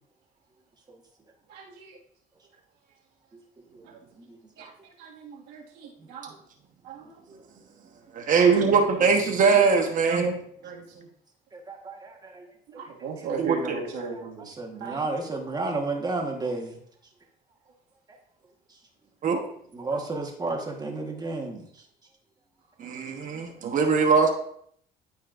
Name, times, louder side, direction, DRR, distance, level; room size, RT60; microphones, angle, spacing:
voice 1, 1.5-2.0 3.8-4.0 4.6-4.7 5.0-6.3 6.8-7.2 8.4-9.4 9.7-9.8 10.2-10.3 10.6-11.1 12.7-14.5 14.8-15.0, right 5 dB, 90° right, -3 dB, 2.0 m, -38 dB
voice 2, 3.7-4.7 6.0-6.1 7.0-7.4 11.5-12.5 12.8-12.9 13.2-13.3 14.1-16.8 19.7-21.8, right 3 dB, 25° right, 1 dB, 1.5 m, -33 dB
voice 3, 8.1-10.4 13.4-13.8 19.2-19.4 22.8-24.3, right 5 dB, 50° right, 3 dB, 1.2 m, -21 dB
12.5 x 4.3 x 2.6 m, 0.66 s
cardioid pair, 110°, 17 cm